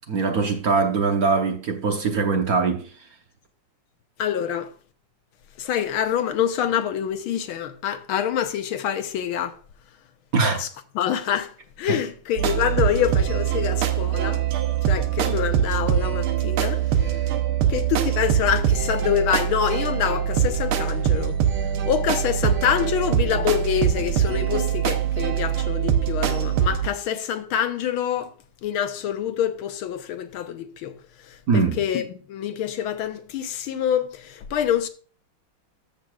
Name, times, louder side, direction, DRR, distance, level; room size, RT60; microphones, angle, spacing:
voice 1, 0.1-2.9 10.3-10.6 31.5-31.8, right 4 dB, 55° right, 1.3 m, -22 dB
voice 2, 4.2-4.7 5.6-9.6 10.5-10.7 10.9-14.4 14.9-17.3 17.7-21.4 21.8-28.3 28.6-30.9 31.3-34.9, left 9 dB, 85° left, 1.7 m, -26 dB
sound 1, 12.4-26.9, right 9 dB, 90° right, 1.8 m, -23 dB
13.5 x 6.5 x 2.4 m
omnidirectional pair, 2.3 m